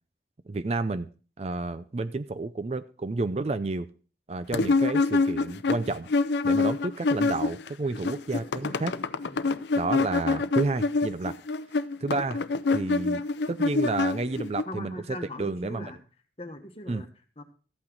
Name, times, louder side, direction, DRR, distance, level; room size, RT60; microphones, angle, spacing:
voice 1, 0.5-1.1 1.4-3.9 4.3-6.1 6.4-9.0 9.8-11.4 12.0-12.4 12.7-13.2 13.5-15.9 16.9-17.0, right 3 dB, 35° right, 13 dB, 0.4 m, -30 dB
sound 1, 4.5-7.7 7.9-14.6, left 3 dB, 80° left, 0.5 m, -26 dB
voice 2, 14.7-16.0 16.4-17.1 17.4-17.5, left 1 dB, 35° left, 6 dB, 1.3 m, -40 dB
13.5 x 8.7 x 3.8 m, 0.37 s
head